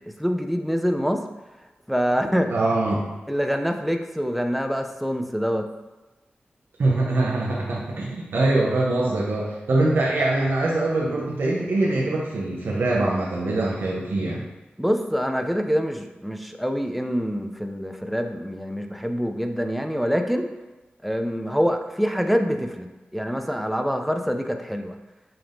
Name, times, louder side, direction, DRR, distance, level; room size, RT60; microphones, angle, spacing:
voice 1, 0.2-1.2 1.9-2.5 3.3-5.6 14.8-20.5 21.0-22.9 23.1-25.0, equal, ahead, 5 dB, 0.4 m, -25 dB
voice 2, 2.5-3.0 6.8-14.4, right 2 dB, 90° right, -4 dB, 0.7 m, -23 dB
5.8 x 2.6 x 3.4 m, 1.1 s
wide cardioid pair, 85°, 4 cm